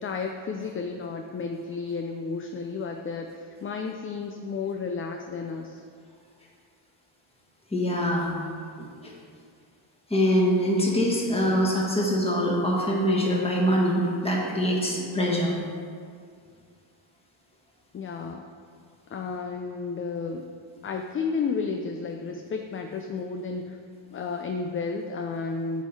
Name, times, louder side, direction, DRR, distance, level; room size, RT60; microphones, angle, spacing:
voice 1, 0.0-5.8 17.9-18.5 19.1-20.5 20.8-23.8 24.1-25.8, left 4 dB, 30° left, 4 dB, 0.3 m, -32 dB
voice 2, 7.7-8.3 8.8-9.1 10.1-15.5, equal, 10° left, -3 dB, 1.6 m, -24 dB
8.1 x 3.7 x 4.6 m, 2.2 s
cardioid pair, 90°, 49 cm